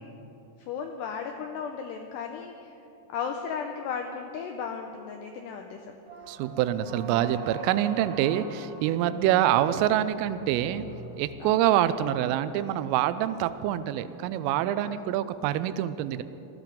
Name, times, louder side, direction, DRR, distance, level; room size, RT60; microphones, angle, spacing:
voice 1, 0.6-2.7 3.1-6.0 9.1-9.2 11.4-11.6 14.8-15.1, left 6 dB, 85° left, 4 dB, 2.4 m, -35 dB
sound 1, 6.0-12.1, right 3 dB, 40° right, 0.9 m, -43 dB
voice 2, 6.3-10.9 11.2-16.2, right 12 dB, 85° right, 13 dB, 3.2 m, -26 dB
19.0 x 13.5 x 5.2 m, 2.9 s
omnidirectional pair, 5.7 m